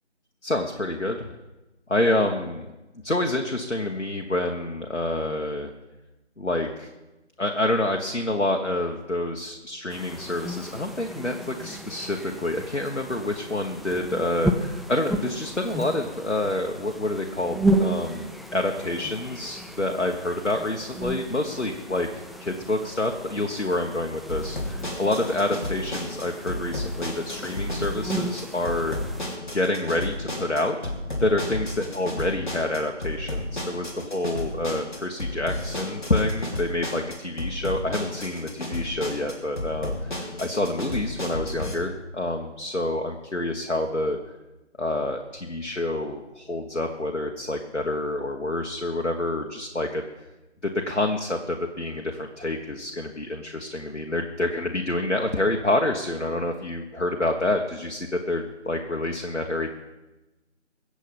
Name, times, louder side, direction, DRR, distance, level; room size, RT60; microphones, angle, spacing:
voice 1, 0.4-1.4 1.9-2.6 3.0-5.7 6.4-6.9 7.4-29.0 29.5-30.8 31.2-44.2 44.8-50.0 50.9-59.7, left 1 dB, 85° left, 3 dB, 1.5 m, -27 dB
sound 1, 9.9-29.4, right 1 dB, ahead, 0.4 m, -33 dB
sound 2, 24.3-41.7, left 1 dB, 40° left, 3.2 m, -32 dB
23.0 x 7.7 x 5.3 m, 1.1 s
figure-of-eight pair, 165°, 35 cm